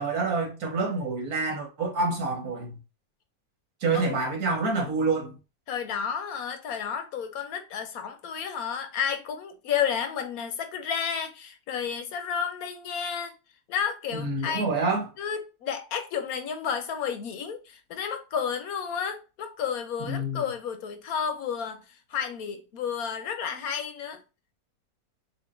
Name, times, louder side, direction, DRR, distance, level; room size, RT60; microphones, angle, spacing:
voice 1, 0.0-2.7 3.8-5.4 14.1-15.1 20.1-20.4, right 3 dB, 90° right, 1.8 m, -27 dB
voice 2, 5.7-13.3 13.7-14.7 15.2-24.2, left 7 dB, 90° left, 1.3 m, -31 dB
6.8 x 2.6 x 2.5 m
omnidirectional pair, 1.5 m